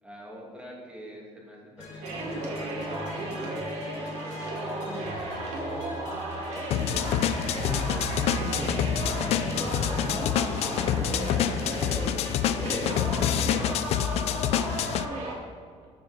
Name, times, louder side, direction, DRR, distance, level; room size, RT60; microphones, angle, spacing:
voice 1, 0.0-5.6 6.4-7.3 13.1-15.9, equal, 10° right, -3 dB, 2.5 m, -47 dB
sound 1, 1.8-10.1, right 1 dB, 90° left, 2.3 m, -39 dB
sound 2, 2.0-15.4, right 2 dB, 90° right, 2.6 m, -35 dB
sound 3, 6.7-15.1, left 10 dB, 65° left, 0.5 m, -27 dB
voice 2, 7.6-12.2 12.6-13.3, left 2 dB, 10° left, -1 dB, 1.0 m, -39 dB
14.5 x 7.1 x 4.3 m, 2.1 s
cardioid pair, 170°, 11 cm